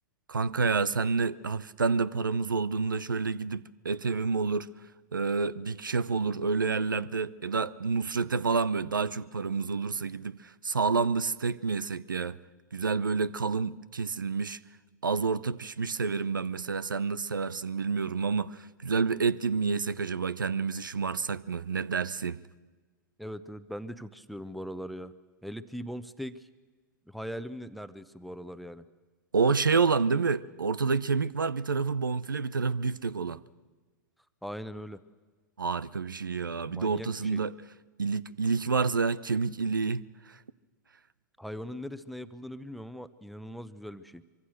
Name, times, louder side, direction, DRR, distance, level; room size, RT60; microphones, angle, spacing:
voice 1, 0.3-4.7 5.1-12.4 12.7-14.6 15.0-22.4 29.3-33.4 35.6-37.5 38.0-40.4, right 4 dB, 90° right, 0.7 m, -29 dB
voice 2, 23.2-25.1 25.4-26.4 27.1-28.8 34.4-35.0 36.7-37.4 41.4-44.2, equal, ahead, 1.0 m, -40 dB
24.5 x 24.0 x 6.5 m
hypercardioid pair, 100°, 10 cm